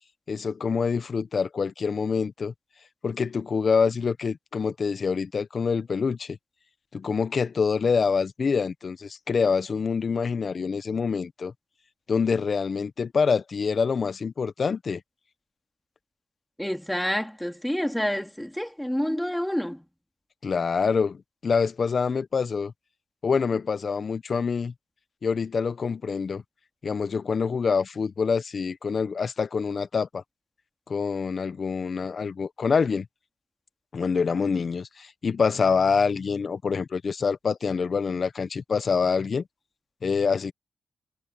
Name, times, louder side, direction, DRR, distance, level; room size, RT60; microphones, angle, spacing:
voice 1, 0.3-2.5 3.0-6.4 6.9-11.5 12.1-15.0 20.4-22.7 23.2-24.7 25.2-26.4 26.8-30.2 30.9-33.1 33.9-39.4 40.0-40.5, left 5 dB, 55° left, 1.4 m, -26 dB
voice 2, 16.6-19.8, equal, 5° left, 4.1 m, -28 dB
supercardioid pair, 40°, 0 cm